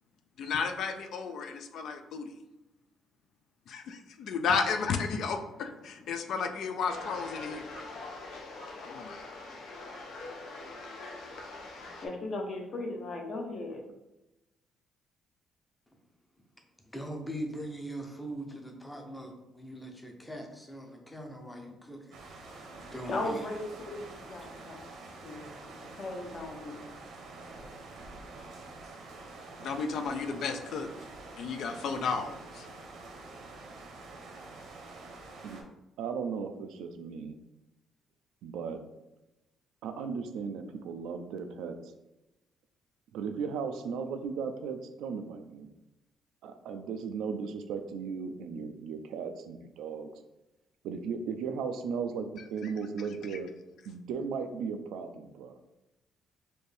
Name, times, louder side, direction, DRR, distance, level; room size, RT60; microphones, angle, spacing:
voice 1, 0.4-2.3 3.7-7.7 8.8-9.3 29.6-30.9 31.4-32.7 52.6-52.7 53.3-53.4, left 5 dB, 60° left, 6 dB, 0.4 m, -33 dB
sound 1, 6.9-12.1, left 3 dB, 80° left, 0.8 m, -43 dB
voice 2, 12.0-13.8 23.1-24.9 25.2-26.8, left 2 dB, 45° left, 2 dB, 0.7 m, -37 dB
voice 3, 16.8-22.0 22.8-23.4 24.4-24.7, right 1 dB, 5° left, 2 dB, 0.6 m, -41 dB
sound 2, 22.1-35.6, right 3 dB, 70° right, 0.8 m, -47 dB
voice 4, 36.0-37.4 38.4-38.8 39.8-41.9 43.1-45.7 46.4-50.1 50.8-53.5 53.9-55.6, right 6 dB, 90° right, 7 dB, 0.4 m, -36 dB
4.3 x 2.6 x 3.3 m, 0.96 s
cardioid pair, 145°, 0 cm